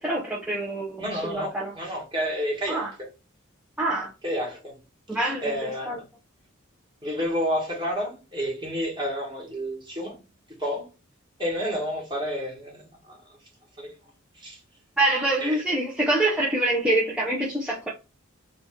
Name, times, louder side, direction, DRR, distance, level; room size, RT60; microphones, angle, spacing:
voice 1, 0.0-1.7 2.7-2.9 3.8-4.1 5.1-5.5 5.9-6.0 15.0-17.9, right 1 dB, 5° right, 0.5 m, -25 dB
voice 2, 1.0-2.9 4.2-4.8 5.4-6.0 7.0-10.2 10.6-10.9 11.4-13.2 13.8-14.0 14.3-14.6 15.4-15.6, equal, 20° right, 1.3 m, -30 dB
2.8 x 2.4 x 4.1 m
head